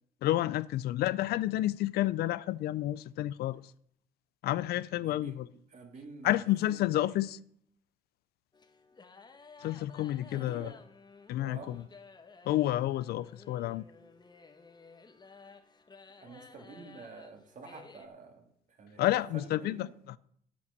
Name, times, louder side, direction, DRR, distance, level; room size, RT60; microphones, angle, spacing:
voice 1, 0.2-3.6 4.4-5.5 6.2-7.4 9.6-10.7 11.3-11.8 12.5-13.8 19.0-19.9, left 14 dB, 65° left, 0.5 m, -30 dB
voice 2, 4.9-5.4 5.7-7.2 10.3-10.8 11.4-11.7 16.2-19.0 19.3-19.9, right 4 dB, 45° right, 2.5 m, -49 dB
sound 1, 8.5-18.1, left 4 dB, 25° left, 1.2 m, -55 dB
8.4 x 8.4 x 6.7 m
supercardioid pair, 85°, 17 cm